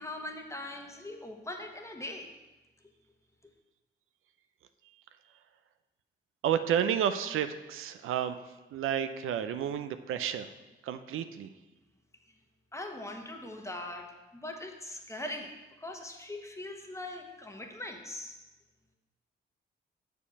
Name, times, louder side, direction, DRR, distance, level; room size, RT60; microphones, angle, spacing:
voice 1, 0.0-2.3 12.7-15.5 15.8-18.4, left 1 dB, 15° left, 3 dB, 1.1 m, -41 dB
voice 2, 6.4-8.4 8.7-10.5 10.8-11.5, right 9 dB, 80° right, 10 dB, 0.5 m, -31 dB
6.7 x 4.9 x 5.8 m, 1.1 s
cardioid pair, 65°, 21 cm